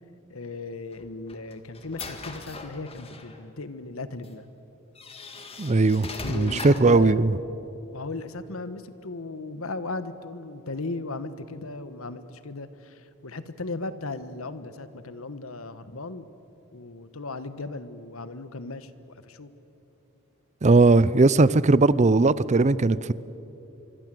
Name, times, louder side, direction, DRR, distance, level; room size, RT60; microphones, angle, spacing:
voice 1, 0.3-4.5 6.2-7.1 7.9-16.3 16.7-18.9 19.2-19.5, left 3 dB, 75° left, 12 dB, 1.3 m, -36 dB
sound 1, 0.9-3.4 4.2-4.3 5.0-7.0, left 3 dB, 30° left, 2.1 m, -40 dB
voice 2, 5.6-7.3 20.6-23.1, right 3 dB, 35° right, 18 dB, 0.5 m, -19 dB
26.0 x 24.0 x 7.7 m, 3.0 s
head